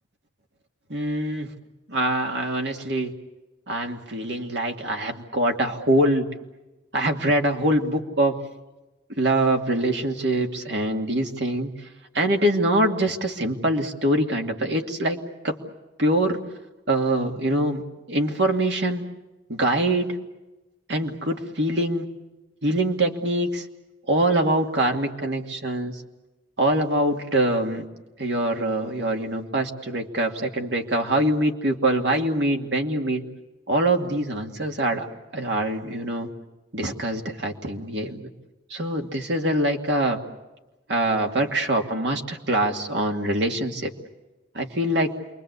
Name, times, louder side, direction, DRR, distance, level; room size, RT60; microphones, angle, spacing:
voice 1, 0.9-1.5 1.9-3.1 3.7-6.3 6.9-8.3 9.1-11.9 12.1-15.2 15.4-15.6 16.0-16.4 16.9-17.8 18.1-19.0 19.5-20.2 20.9-22.1 22.6-23.7 24.1-26.0 26.6-27.9 28.2-33.2 33.7-35.1 35.3-36.3 36.7-38.3 38.7-40.2 40.9-43.9 44.5-45.2, right 1 dB, 70° right, 3 dB, 2.5 m, -24 dB
28.5 x 23.0 x 8.3 m, 1.1 s
head